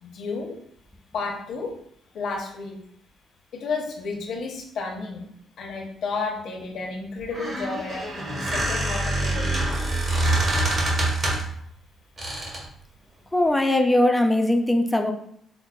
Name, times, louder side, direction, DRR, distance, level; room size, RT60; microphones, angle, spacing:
voice 1, 0.0-0.6 1.1-1.8 2.1-2.8 3.5-9.6, left 4 dB, 70° left, 1 dB, 0.8 m, -32 dB
Squeak, 7.2-11.6 12.2-12.7, right 1 dB, 50° right, 1.5 m, -25 dB
voice 2, 13.3-15.1, left 1 dB, 10° left, 5 dB, 0.4 m, -20 dB
5.9 x 2.1 x 2.3 m, 0.67 s
cardioid pair, 90°, 0 cm